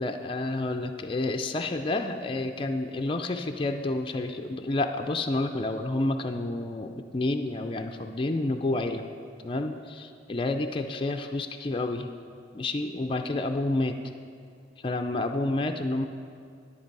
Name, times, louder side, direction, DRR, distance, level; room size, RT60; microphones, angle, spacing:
voice 1, 0.0-9.0 9.4-12.1 12.5-14.0 14.8-16.1, left 2 dB, 25° left, 5 dB, 0.4 m, -29 dB
10.0 x 9.8 x 4.6 m, 2.3 s
head